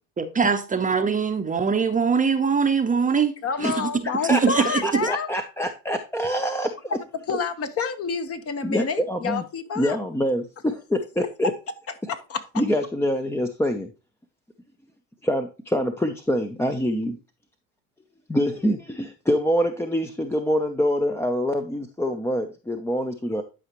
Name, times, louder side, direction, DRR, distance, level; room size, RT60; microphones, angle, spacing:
voice 1, 0.2-3.9 4.2-5.1, right 5 dB, 20° right, 0.8 m, -22 dB
voice 2, 3.4-5.3 6.9-7.0 7.3-10.0 12.1-12.4, left 5 dB, 35° left, 1.2 m, -28 dB
voice 3, 4.8-6.7 8.6-9.4 9.8-11.5 12.6-13.9 15.2-17.2 18.3-23.4, equal, 5° left, 0.7 m, -25 dB
11.5 x 4.9 x 3.0 m
supercardioid pair, 90°, 40 cm